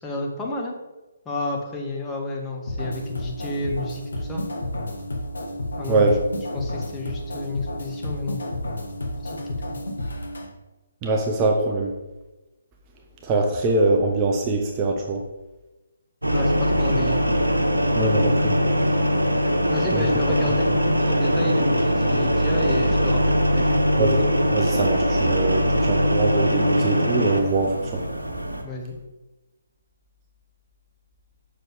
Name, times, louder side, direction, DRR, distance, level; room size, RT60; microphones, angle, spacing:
voice 1, 0.0-0.7 1.2-4.4 5.8-6.2 6.5-8.4 9.2-9.8 16.3-17.2 19.7-23.8 28.6-28.9, left 2 dB, 10° left, -1 dB, 1.0 m, -31 dB
sound 1, 2.7-10.5, left 1 dB, 60° left, 1.2 m, -31 dB
voice 2, 5.9-6.2 11.0-11.9 13.2-15.2 18.0-18.6 19.9-20.1 20.7-20.8 24.0-24.3 24.5-28.0, right 2 dB, 20° right, 1 dB, 0.6 m, -23 dB
sound 2, 16.2-28.6, equal, 80° right, 1.1 m, -21 dB
6.7 x 6.0 x 3.4 m, 1.1 s
figure-of-eight pair, 140°, 0 cm